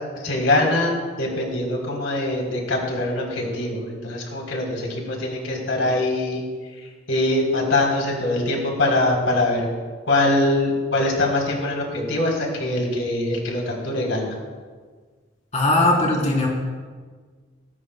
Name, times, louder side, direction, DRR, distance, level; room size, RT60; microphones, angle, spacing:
voice 1, 0.2-6.4 7.1-9.6 10.1-14.4, left 2 dB, 80° left, -1 dB, 3.5 m, -23 dB
voice 2, 15.5-16.5, left 2 dB, 35° left, -3 dB, 3.6 m, -19 dB
19.0 x 18.5 x 2.2 m, 1.5 s
head